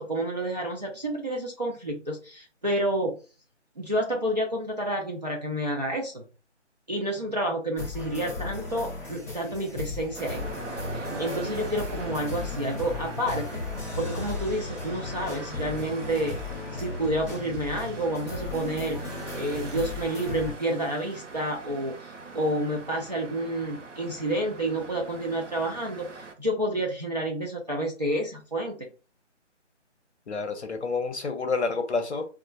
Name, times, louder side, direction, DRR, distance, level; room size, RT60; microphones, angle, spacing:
voice 1, 0.0-3.2 3.8-6.2 6.9-10.4 10.9-13.6 14.0-16.4 16.7-19.0 19.3-26.1 26.4-28.9, right 1 dB, 35° right, 0.5 m, -29 dB
sound 1, 7.8-20.5, left 3 dB, 15° left, 0.8 m, -36 dB
sound 2, 10.2-26.3, right 4 dB, 80° right, 0.8 m, -42 dB
voice 2, 30.3-32.3, left 4 dB, 65° left, 0.7 m, -29 dB
4.1 x 2.4 x 2.2 m
figure-of-eight pair, 165°, 37 cm